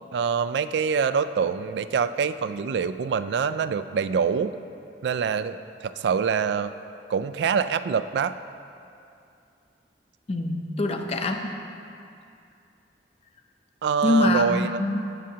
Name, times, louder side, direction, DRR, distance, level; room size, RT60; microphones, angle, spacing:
voice 1, 0.1-4.5 5.0-6.7 7.1-8.3 13.8-14.7, right 6 dB, 70° right, 12 dB, 0.3 m, -25 dB
voice 2, 10.3-11.5 14.0-15.0, left 2 dB, 35° left, 4 dB, 0.6 m, -24 dB
16.0 x 6.3 x 2.8 m, 2.5 s
head